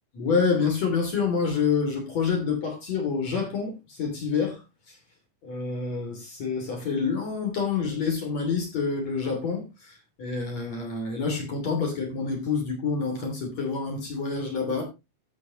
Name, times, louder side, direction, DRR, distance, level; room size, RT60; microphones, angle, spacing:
voice 1, 0.1-4.6 4.9-5.0 5.4-14.8, left 5 dB, 40° left, 3.4 m, -27 dB
14.0 x 7.3 x 3.1 m
omnidirectional pair, 5.9 m